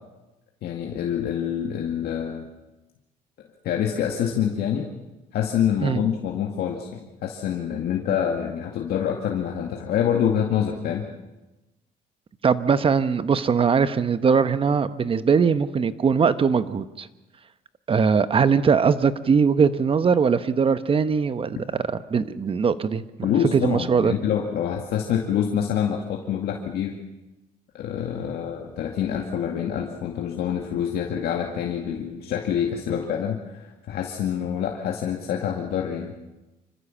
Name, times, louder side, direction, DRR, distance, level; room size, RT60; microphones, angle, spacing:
voice 1, 0.6-2.5 3.6-4.9 5.3-11.0 23.2-27.0 27.7-36.1, left 9 dB, 70° left, 1 dB, 2.1 m, -26 dB
voice 2, 12.4-17.1 17.9-21.6 22.1-23.0 23.5-24.1, right 6 dB, 30° right, 13 dB, 1.0 m, -21 dB
26.5 x 14.5 x 7.3 m, 1.1 s
cardioid pair, 110°, 17 cm